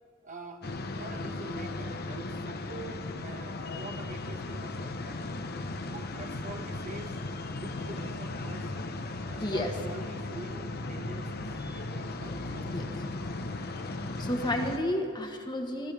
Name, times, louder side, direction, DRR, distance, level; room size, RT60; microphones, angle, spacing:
voice 1, 0.2-0.6 0.9-5.3 5.8-7.2 7.5-8.7 9.2-11.4 11.9-13.0, right 2 dB, 40° right, 4 dB, 1.2 m, -45 dB
sound 1, 0.6-14.8, left 2 dB, 50° left, 0.9 m, -36 dB
voice 2, 9.4-9.7 11.6-11.8 12.7-12.8 14.0-15.9, left 1 dB, 20° left, 3 dB, 1.4 m, -32 dB
24.5 x 15.5 x 3.5 m, 2.6 s
head